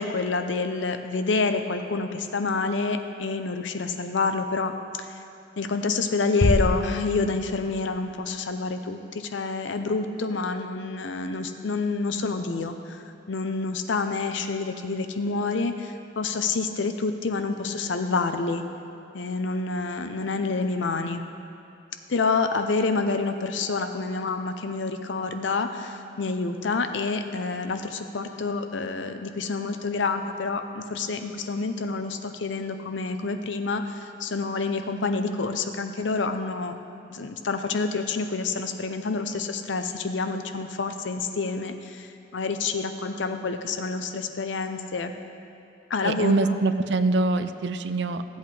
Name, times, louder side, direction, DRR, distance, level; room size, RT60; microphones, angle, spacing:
voice 1, 0.0-4.7 5.0-5.2 5.6-18.6 19.1-21.2 22.1-36.8 37.1-45.1 45.9-46.6, left 4 dB, 85° left, 7 dB, 0.6 m, -28 dB
sound 1, 6.4-8.0, left 2 dB, 50° left, 0.6 m, -26 dB
voice 2, 46.0-48.4, right 3 dB, 65° right, 11 dB, 0.4 m, -24 dB
15.0 x 8.1 x 3.3 m, 2.8 s
head